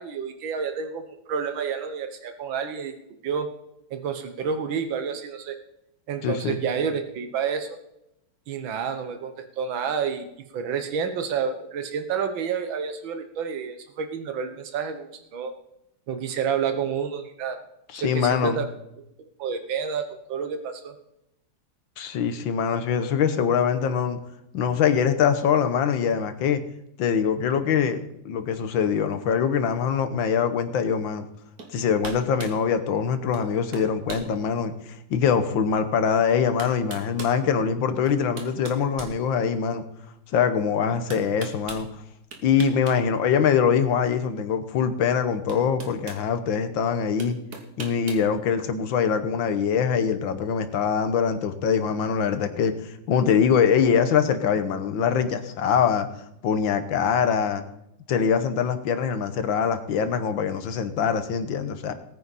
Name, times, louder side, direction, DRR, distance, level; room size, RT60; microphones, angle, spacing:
voice 1, 0.0-2.9 3.2-3.5 3.9-5.6 6.1-7.8 8.5-10.3 10.5-15.5 16.1-17.6 17.9-18.6 19.2-20.9, right 6 dB, 85° right, 8 dB, 1.9 m, -29 dB
voice 2, 6.2-6.6 17.9-18.6 22.0-24.2 24.5-26.6 27.0-31.3 31.7-39.8 40.3-41.9 42.4-47.4 47.8-56.1 56.4-57.6 58.1-61.9, left 7 dB, 85° left, 10 dB, 1.8 m, -23 dB
sound 1, 31.6-31.7 32.0-32.6 33.3-33.5 33.7-34.3 34.9-35.0 36.1-36.2 36.6-37.4 38.1-39.7 41.1-41.9 42.3-43.0 43.3-43.4 44.8-44.9 45.5-46.2 47.2-48.3, right 3 dB, 55° right, 2.1 m, -39 dB
19.5 x 9.3 x 4.2 m, 0.82 s
omnidirectional pair, 2.1 m